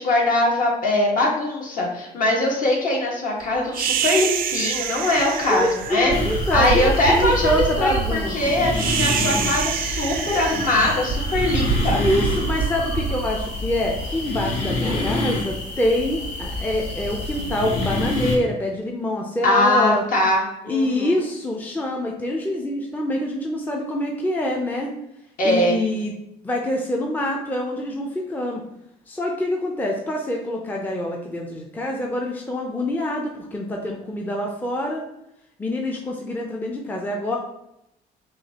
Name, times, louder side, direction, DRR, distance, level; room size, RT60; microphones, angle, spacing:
voice 1, 0.0-6.1 6.5-12.0 19.4-21.1 25.4-25.8, left 1 dB, 55° left, -2 dB, 1.4 m, -21 dB
sound 1, 3.7-14.1, right 6 dB, 60° right, 0.4 m, -26 dB
voice 2, 5.5-8.7 12.0-20.0 20.7-24.9 25.4-26.1 26.4-28.6 29.1-35.0 35.6-37.4, left 1 dB, 10° left, 0 dB, 0.5 m, -25 dB
sound 2, 6.1-18.4, left 2 dB, 85° left, 1.3 m, -28 dB
6.3 x 2.4 x 2.8 m, 0.83 s
cardioid pair, 110°, 17 cm